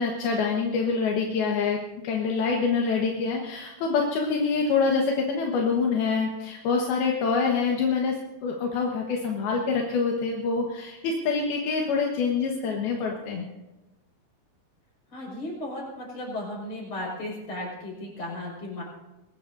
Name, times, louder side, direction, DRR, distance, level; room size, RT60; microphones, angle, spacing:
voice 1, 0.0-8.2 8.4-13.5, left 5 dB, 75° left, 0 dB, 3.2 m, -26 dB
voice 2, 15.1-18.8, left 1 dB, 40° left, -2 dB, 6.7 m, -35 dB
23.0 x 19.0 x 2.7 m, 1.0 s
omnidirectional pair, 4.5 m